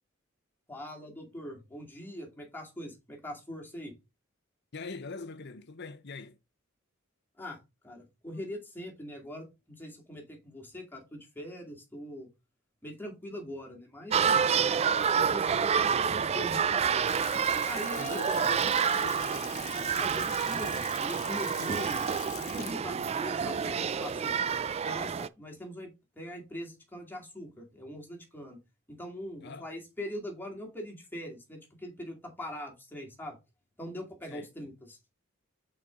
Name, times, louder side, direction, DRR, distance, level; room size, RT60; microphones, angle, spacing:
voice 1, 0.7-3.9 7.4-7.6 7.8-12.3 12.8-14.4 15.1-17.1 17.6-18.4 20.0-22.0 22.4-24.3 24.8-25.9 26.2-28.6 28.9-33.4 33.8-35.0, left 1 dB, 10° left, 2.4 m, -42 dB
voice 2, 4.7-6.4 18.0-19.7 21.6-22.0 29.4-29.7 34.3-34.5, left 3 dB, 55° left, 0.8 m, -43 dB
sound 1, 14.1-25.3, right 7 dB, 30° right, 0.3 m, -28 dB
Water tap faucet / Sink (filling or washing) / Splash splatter, 16.7-24.8, left 13 dB, 90° left, 0.8 m, -45 dB
5.9 x 4.5 x 5.1 m
head